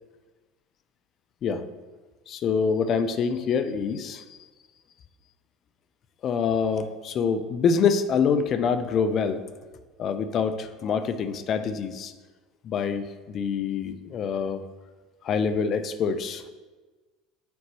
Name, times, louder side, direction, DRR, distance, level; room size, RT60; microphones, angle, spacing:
voice 1, 2.3-4.2 6.2-9.4 10.0-12.1 12.6-14.6 15.2-16.5, left 6 dB, 45° left, 10 dB, 0.5 m, -25 dB
8.4 x 4.5 x 3.0 m, 1.3 s
hypercardioid pair, 70°, 0 cm